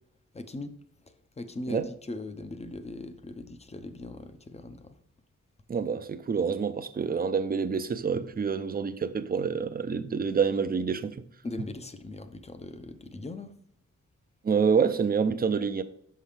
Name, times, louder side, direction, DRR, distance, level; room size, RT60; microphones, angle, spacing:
voice 1, 0.3-0.7 1.4-4.9 11.4-13.6, left 2 dB, 20° left, 0.5 m, -39 dB
voice 2, 5.7-11.2 14.4-15.8, right 6 dB, 30° right, 0.5 m, -27 dB
5.6 x 5.6 x 3.3 m
wide cardioid pair, 95°, 29 cm